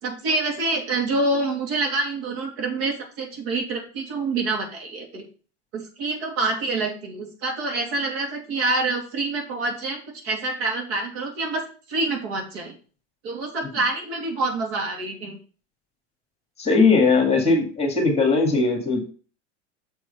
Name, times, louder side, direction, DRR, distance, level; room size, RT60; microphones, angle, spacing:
voice 1, 0.0-5.2 5.7-11.6 11.9-12.7 13.2-15.4, right 3 dB, 65° right, 1 dB, 2.8 m, -26 dB
voice 2, 16.6-19.0, left 3 dB, 20° left, 3 dB, 1.9 m, -19 dB
6.9 x 4.7 x 5.4 m, 0.39 s
supercardioid pair, 125°, 34 cm